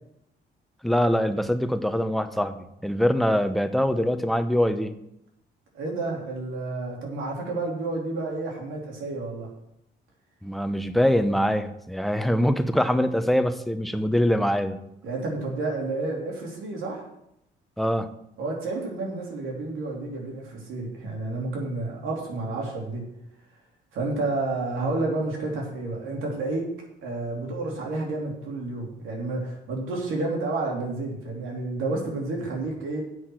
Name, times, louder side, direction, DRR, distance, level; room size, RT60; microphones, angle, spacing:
voice 1, 0.8-4.9 10.4-14.8 17.8-18.1, equal, ahead, 9 dB, 0.8 m, -23 dB
voice 2, 5.7-9.5 15.0-17.0 18.4-23.0 23.9-26.7 27.0-33.0, right 2 dB, 90° right, -1 dB, 3.1 m, -30 dB
7.9 x 6.3 x 7.6 m, 0.80 s
cardioid pair, 90°, 20 cm